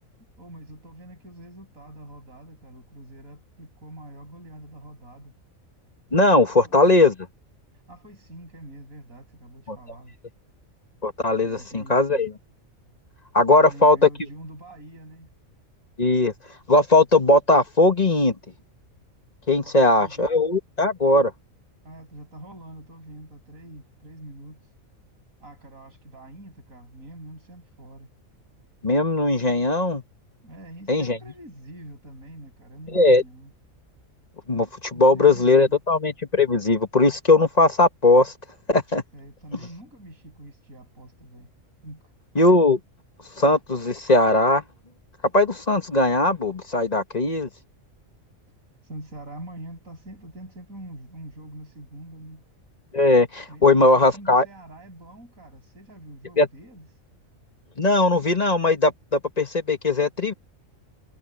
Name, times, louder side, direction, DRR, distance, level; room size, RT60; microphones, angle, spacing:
voice 1, 0.2-5.3 6.6-7.1 7.9-10.2 11.4-12.3 13.5-15.3 19.6-20.3 21.8-24.7 25.4-28.1 30.4-33.5 34.9-35.8 39.1-41.5 41.8-42.1 48.8-52.5 53.5-56.9, right 1 dB, 80° right, 7.6 m, -44 dB
voice 2, 6.1-7.1 11.0-12.3 13.3-14.1 16.0-16.3 16.7-18.4 19.5-21.3 28.8-30.0 30.9-31.2 32.9-33.2 34.5-38.3 38.7-39.0 42.4-42.8 43.4-44.6 45.3-47.5 52.9-54.5 56.4-56.5 57.8-60.3, left 2 dB, 30° left, 1.7 m, -19 dB
omnidirectional pair, 1.4 m